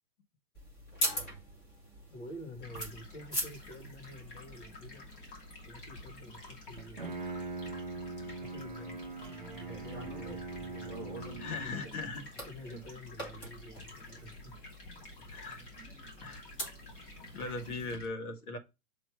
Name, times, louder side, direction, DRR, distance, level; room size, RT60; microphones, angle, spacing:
sound 1, 0.5-17.9, right 1 dB, 15° left, 1.4 m, -44 dB
voice 1, 2.1-5.1 5.6-7.0 8.3-11.9 12.5-14.6 15.2-15.4, left 1 dB, 55° left, 2.2 m, -49 dB
Stream, 2.6-18.1, left 2 dB, 35° left, 2.7 m, -51 dB
Bowed string instrument, 6.8-11.8, right 3 dB, 30° right, 0.5 m, -42 dB
voice 2, 11.4-12.2 15.3-16.4 17.3-18.6, left 3 dB, 70° left, 1.9 m, -39 dB
7.0 x 3.1 x 4.9 m
hypercardioid pair, 175°, 46 cm